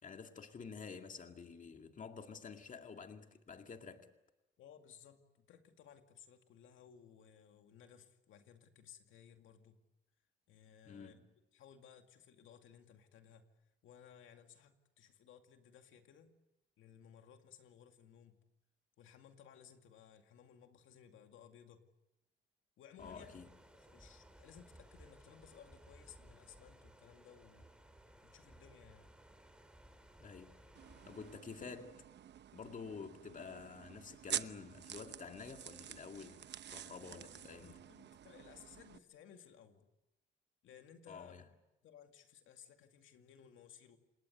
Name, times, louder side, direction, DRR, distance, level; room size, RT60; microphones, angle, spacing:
voice 1, 0.0-4.1 10.8-11.3 23.0-23.5 30.2-30.6 31.0-32.0 32.5-37.9 41.1-41.4, left 5 dB, 40° left, 2.1 m, -50 dB
voice 2, 4.6-9.8 10.5-11.2 11.5-13.5 13.8-16.3 16.8-18.4 19.0-21.8 22.8-23.4 23.7-27.7 28.2-29.1 37.9-39.9 40.6-41.4 41.8-44.0, left 8 dB, 80° left, 2.3 m, -60 dB
sound 1, 23.0-31.4, right 1 dB, 5° right, 3.8 m, -60 dB
sound 2, 30.7-39.0, right 10 dB, 60° right, 0.9 m, -48 dB
28.5 x 20.0 x 8.0 m
cardioid pair, 90°, 20 cm